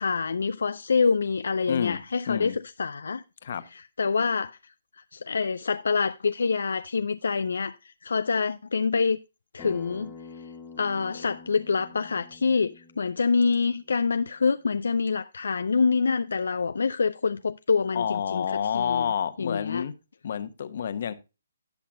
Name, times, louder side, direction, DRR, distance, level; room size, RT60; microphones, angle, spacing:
voice 1, 0.0-3.2 3.7-4.6 5.1-9.2 9.5-10.1 10.8-18.4 18.7-19.0 19.4-19.8, left 5 dB, 75° left, 0.5 m, -26 dB
voice 2, 1.7-2.0 2.3-2.6 3.4-3.6 17.9-19.9 20.2-21.1, left 8 dB, 55° left, 1.1 m, -29 dB
Acoustic guitar, 9.6-14.8, left 4 dB, 20° left, 1.8 m, -48 dB
17.5 x 5.9 x 2.2 m
hypercardioid pair, 145°, 0 cm